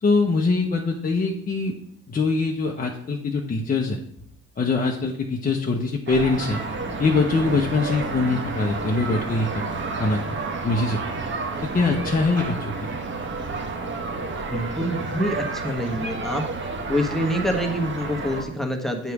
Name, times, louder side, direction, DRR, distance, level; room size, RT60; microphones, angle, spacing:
voice 1, 0.0-1.8 2.1-4.0 4.6-6.6 7.0-9.7 10.0-10.4 10.6-11.2 11.6-13.0, left 3 dB, 30° left, 0 dB, 0.8 m, -23 dB
sound 1, 6.1-18.4, right 3 dB, 40° right, 1.0 m, -30 dB
voice 2, 14.5-16.4 16.9-19.1, equal, ahead, 3 dB, 1.2 m, -26 dB
8.2 x 3.1 x 5.9 m, 0.69 s
cardioid pair, 90°, 30 cm